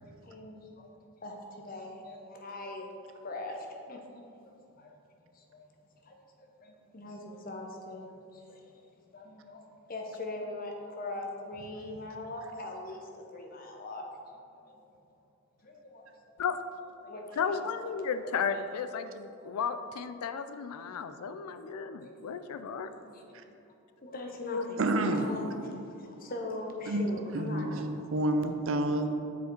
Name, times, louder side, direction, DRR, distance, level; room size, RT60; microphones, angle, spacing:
voice 1, 0.0-2.9 3.1-4.9 5.3-5.7 6.0-8.0 8.3-8.7 9.1-14.0 14.5-14.6 15.6-16.1 17.0-17.7 18.2-18.6 21.5-21.6 22.0-22.3 22.8-23.2 24.0-24.8 25.1-28.0, left 2 dB, 40° left, 2 dB, 0.7 m, -42 dB
voice 2, 17.4-22.9 24.4-24.6, left 6 dB, 85° left, 11 dB, 0.4 m, -34 dB
voice 3, 24.8-25.2 26.9-27.1 27.3-29.1, right 1 dB, 60° right, 7 dB, 0.5 m, -29 dB
6.9 x 4.8 x 4.5 m, 2.8 s
head